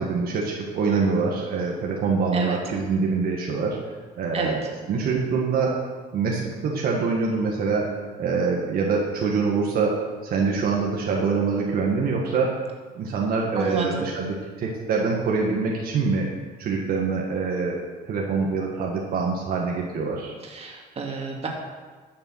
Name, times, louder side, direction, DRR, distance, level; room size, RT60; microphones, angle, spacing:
voice 1, 0.0-3.8 4.2-4.6 4.9-5.8 6.1-12.6 12.9-16.3 16.6-20.3, right 4 dB, 60° right, -2 dB, 1.8 m, -25 dB
voice 2, 13.5-14.1 20.4-21.5, right 4 dB, 35° right, -1 dB, 2.5 m, -30 dB
12.0 x 6.8 x 6.4 m, 1.4 s
cardioid pair, 110°, 17 cm